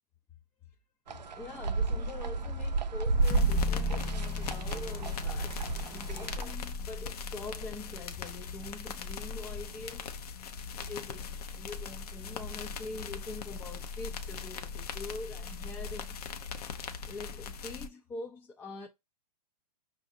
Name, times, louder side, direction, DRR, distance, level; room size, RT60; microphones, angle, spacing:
sound 1, 1.1-6.5, right 3 dB, 90° right, 0.5 m, -32 dB
voice 1, 1.3-10.1 10.7-16.2 17.0-18.9, left 3 dB, 10° left, 0.3 m, -44 dB
sound 2, 3.2-17.9, left 5 dB, 65° left, 0.7 m, -40 dB
sound 3, 3.3-7.5, left 1 dB, 30° left, 0.8 m, -36 dB
5.4 x 2.5 x 2.5 m
hypercardioid pair, 120°, 21 cm